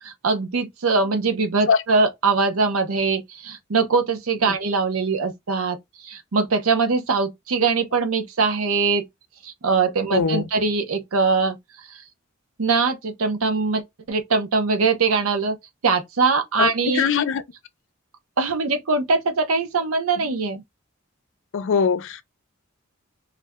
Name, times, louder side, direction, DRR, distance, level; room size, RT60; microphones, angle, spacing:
voice 1, 0.0-9.1 9.4-11.6 11.9-12.0 12.6-15.6 15.8-17.1 18.4-20.6, right 4 dB, 90° right, 0.7 m, -22 dB
voice 2, 10.1-10.5 16.6-17.4 21.5-22.2, left 6 dB, 65° left, 0.4 m, -21 dB
2.4 x 2.2 x 3.4 m
head